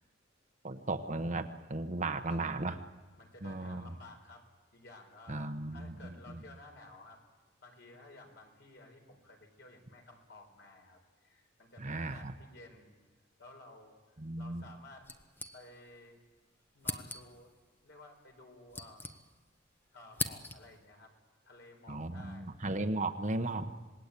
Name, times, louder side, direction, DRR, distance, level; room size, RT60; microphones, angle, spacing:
voice 1, 0.6-2.8 3.4-3.9 5.3-6.4 11.8-12.3 14.2-14.6 21.9-23.7, right 2 dB, 40° right, 7 dB, 1.1 m, -36 dB
voice 2, 2.0-2.4 3.2-4.4 4.7-7.2 7.6-13.0 13.4-14.0 14.4-15.1 15.5-16.2 16.7-17.5 17.8-19.1 19.9-21.1 21.4-22.6, left 2 dB, 60° left, 3 dB, 4.7 m, -54 dB
sound 1, 15.0-16.0 16.3-16.4 16.8-17.5 18.3-19.6 19.9-20.9, left 2 dB, 10° left, 0.9 m, -41 dB
26.5 x 20.0 x 8.5 m, 1.3 s
head